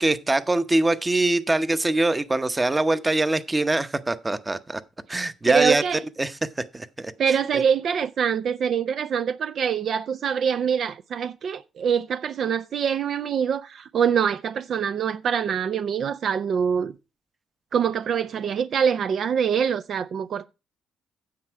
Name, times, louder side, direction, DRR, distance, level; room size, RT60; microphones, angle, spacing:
voice 1, 0.0-4.8 5.1-5.8 6.2-6.4 6.7-7.4, right 2 dB, 20° right, 0.8 m, -23 dB
voice 2, 5.5-6.0 7.2-16.9 17.7-20.4, right 7 dB, 60° right, 0.4 m, -24 dB
9.6 x 7.4 x 4.5 m
cardioid pair, 90°, 0 cm